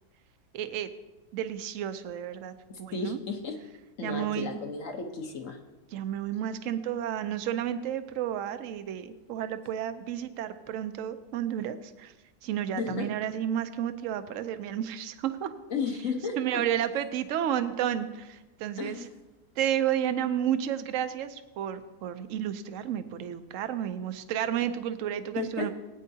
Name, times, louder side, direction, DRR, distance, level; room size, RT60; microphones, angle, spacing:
voice 1, 0.5-0.9 1.3-3.2 4.0-4.6 5.9-12.1 12.4-15.5 16.4-19.0 19.6-25.7, right 10 dB, 65° right, 10 dB, 0.9 m, -31 dB
voice 2, 2.7-3.6 4.0-5.6 12.8-13.1 15.7-16.6 18.8-19.0 25.4-25.7, left 4 dB, 55° left, 4 dB, 1.3 m, -33 dB
17.5 x 9.3 x 2.8 m, 1.1 s
omnidirectional pair, 1.7 m